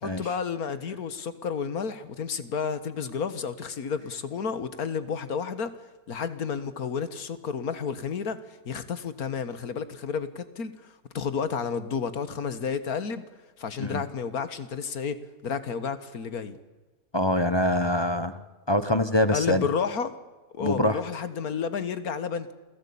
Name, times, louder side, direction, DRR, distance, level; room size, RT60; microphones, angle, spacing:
voice 1, 0.0-5.7 6.1-8.4 8.7-13.2 13.6-16.6 19.3-20.1 20.5-22.5, left 6 dB, 75° left, 12 dB, 1.9 m, -31 dB
voice 2, 17.1-19.7 20.6-21.0, left 1 dB, 20° left, 12 dB, 0.9 m, -25 dB
27.5 x 17.5 x 8.6 m, 1.3 s
omnidirectional pair, 1.6 m